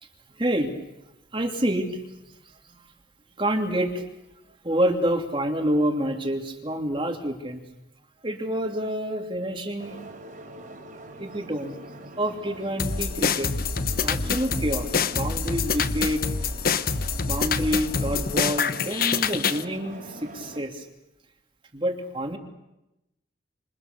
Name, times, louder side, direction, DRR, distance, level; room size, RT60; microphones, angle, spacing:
voice 1, 0.4-0.7 1.3-2.0 2.3-2.4 3.4-4.0 4.6-7.6 8.2-10.0 11.2-11.8 12.2-13.5 14.0-14.9 15.2-16.3 17.2-20.9 21.7-22.4, equal, 25° right, 3 dB, 2.8 m, -27 dB
sound 1, 9.8-20.6, right 1 dB, 45° right, 3.9 m, -43 dB
sound 2, 12.8-19.6, left 5 dB, 50° left, 1.0 m, -26 dB
28.0 x 27.5 x 6.9 m, 0.93 s
head